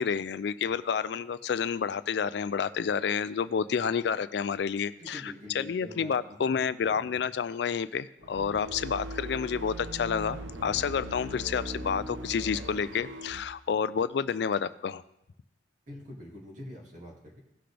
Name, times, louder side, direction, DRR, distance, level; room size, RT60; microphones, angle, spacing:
voice 1, 0.0-15.0, left 6 dB, 65° left, 15 dB, 0.3 m, -29 dB
voice 2, 5.0-7.3 15.9-17.4, left 1 dB, 40° right, -2 dB, 2.4 m, -46 dB
sound 1, 8.2-13.4, right 1 dB, 85° right, 0.9 m, -40 dB
17.0 x 5.9 x 3.3 m, 0.82 s
head